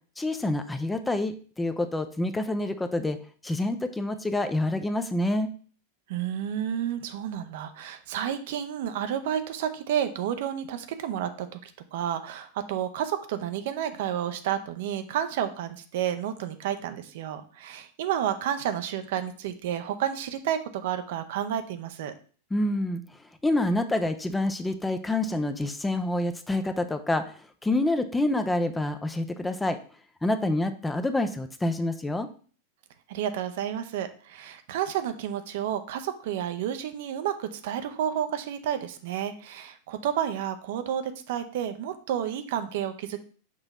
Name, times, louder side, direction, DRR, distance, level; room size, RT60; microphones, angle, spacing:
voice 1, 0.2-5.5 22.5-29.8 30.2-32.3, left 1 dB, 10° left, 9 dB, 0.5 m, -27 dB
voice 2, 6.1-22.1 33.1-43.2, right 10 dB, 55° right, 9 dB, 0.6 m, -31 dB
6.1 x 2.9 x 5.4 m, 0.42 s
figure-of-eight pair, 90°, 0 cm